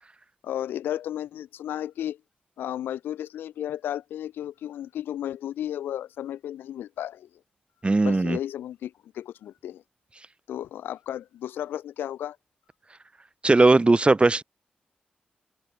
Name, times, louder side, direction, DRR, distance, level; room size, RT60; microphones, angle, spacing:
voice 1, 0.4-2.2 2.6-7.3 8.0-9.8 10.5-12.4, left 11 dB, 85° left, 5.4 m, -33 dB
voice 2, 7.8-8.4 13.4-14.4, right 2 dB, 30° right, 3.0 m, -18 dB
supercardioid pair, 40°, 3 cm